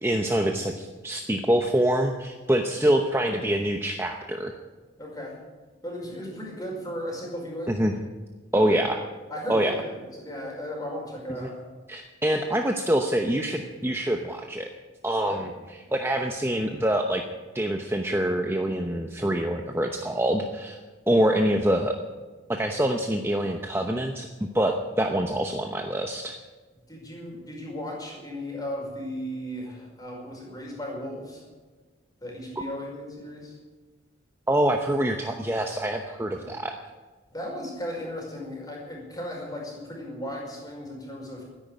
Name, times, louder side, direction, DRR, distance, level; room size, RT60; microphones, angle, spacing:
voice 1, 0.0-4.5 7.7-7.9 8.5-9.0 9.5-9.7 11.4-11.5 11.9-14.7 15.0-15.5 15.9-17.2 17.5-20.8 21.1-21.9 22.5-24.3 24.5-26.4 34.5-36.7, right 1 dB, 10° right, 3 dB, 0.8 m, -25 dB
voice 2, 5.0-5.4 5.8-7.7 8.5-8.8 9.3-11.6 15.3-15.5 26.9-31.4 32.2-33.6 36.3-36.5 37.3-41.4, equal, 20° left, -2 dB, 5.3 m, -36 dB
13.0 x 10.5 x 10.0 m, 1.3 s
head